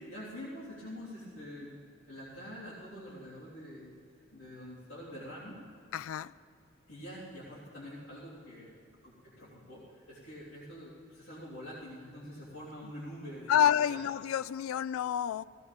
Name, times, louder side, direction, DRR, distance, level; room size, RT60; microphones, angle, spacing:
voice 1, 0.0-1.8 2.1-3.9 4.3-5.6 6.9-8.8 9.0-14.0, equal, 60° left, -11 dB, 3.3 m, -46 dB
voice 2, 5.9-6.3 13.5-15.4, left 9 dB, 75° left, 17 dB, 0.3 m, -28 dB
17.0 x 17.0 x 3.6 m, 2.3 s
head